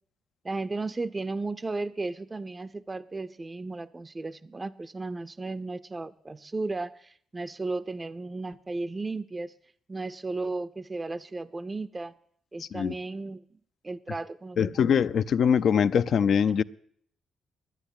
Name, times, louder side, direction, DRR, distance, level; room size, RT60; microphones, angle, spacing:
voice 1, 0.4-9.5 9.9-12.1 12.5-13.4 13.8-14.8, right 3 dB, 25° right, 0.5 m, -34 dB
voice 2, 12.6-12.9 14.6-16.6, left 7 dB, 60° left, 0.5 m, -23 dB
10.5 x 9.7 x 10.0 m
cardioid pair, 90°, 0 cm